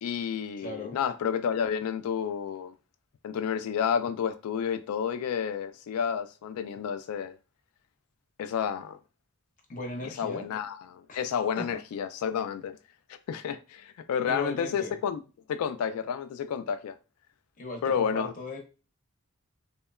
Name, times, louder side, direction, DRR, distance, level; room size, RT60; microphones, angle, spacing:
voice 1, 0.0-2.7 3.2-7.4 8.4-9.0 10.2-12.8 13.3-15.2 15.5-17.0 17.8-18.3, left 7 dB, 80° left, 0.3 m, -30 dB
voice 2, 0.6-1.0 9.7-10.5 11.1-11.2 11.6-11.8 14.3-15.0 17.6-18.6, left 2 dB, 35° left, 0.6 m, -37 dB
2.8 x 2.2 x 2.2 m
head